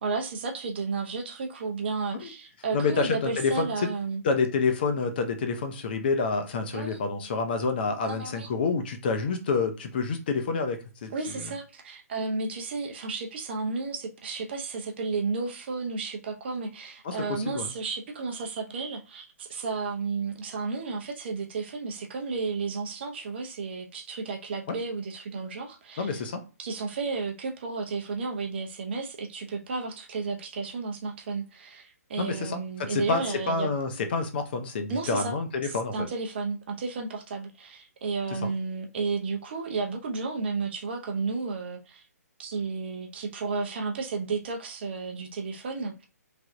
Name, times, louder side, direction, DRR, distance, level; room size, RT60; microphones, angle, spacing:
voice 1, 0.0-4.2 6.7-7.0 8.0-8.5 11.1-26.2 26.6-33.7 34.9-35.4 35.6-42.0 42.4-45.9, right 4 dB, 40° right, 0.6 m, -32 dB
voice 2, 2.7-3.9 4.2-11.1 17.0-17.7 24.7-24.8 26.0-26.4 32.2-36.1 38.4-38.5, left 4 dB, 35° left, 0.5 m, -28 dB
3.3 x 2.2 x 2.5 m
figure-of-eight pair, 130°, 9 cm